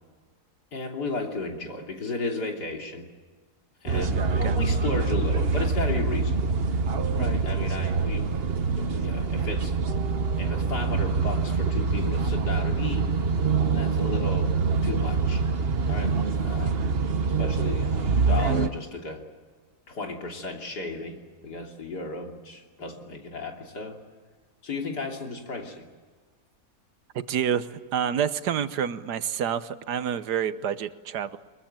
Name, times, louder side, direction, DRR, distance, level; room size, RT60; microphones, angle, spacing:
voice 1, 0.7-3.1 3.8-6.6 7.2-8.3 8.8-9.8 10.4-13.0 13.7-14.5 14.8-15.4 15.9-16.8 17.2-19.2 19.9-24.0 24.6-25.8, left 3 dB, 90° left, 2 dB, 3.7 m, -34 dB
sound 1, 3.9-18.7, right 4 dB, 40° right, 1.1 m, -25 dB
voice 2, 27.1-31.4, right 8 dB, 90° right, 13 dB, 1.6 m, -28 dB
23.5 x 22.0 x 8.9 m, 1.5 s
omnidirectional pair, 1.7 m